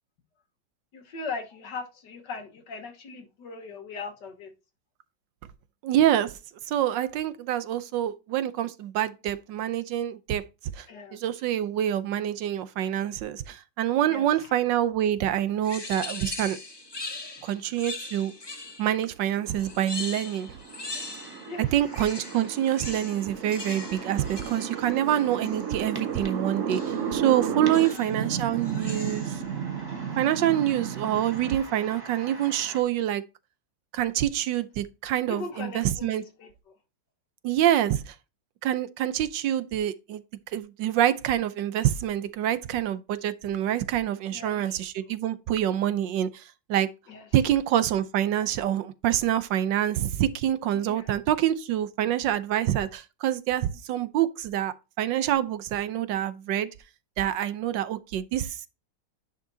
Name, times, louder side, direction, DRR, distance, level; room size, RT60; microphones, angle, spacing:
voice 1, 0.9-4.5 10.9-11.2 14.0-14.3 21.5-21.7 27.6-28.2 35.3-36.5 44.3-44.9 47.1-47.2 50.7-51.2, left 4 dB, 65° left, 1.9 m, -39 dB
voice 2, 5.8-6.4 6.7-10.4 10.8-10.9 11.1-16.6 17.4-18.3 18.8-20.5 21.6-29.4 30.2-33.2 33.9-36.2 37.4-38.1 38.6-40.2 40.5-46.9 47.3-56.7 57.2-58.7, right 11 dB, 75° right, 1.3 m, -26 dB
sound 1, 15.6-19.0 19.6-21.6 21.8-25.7 26.7-27.1 27.7-28.2 28.6-29.4, left 3 dB, 35° left, 0.4 m, -40 dB
sound 2, 19.4-32.8, right 2 dB, 15° right, 1.4 m, -46 dB
sound 3, 19.4-31.6, right 7 dB, 55° right, 0.9 m, -34 dB
10.0 x 5.4 x 2.7 m
omnidirectional pair, 2.0 m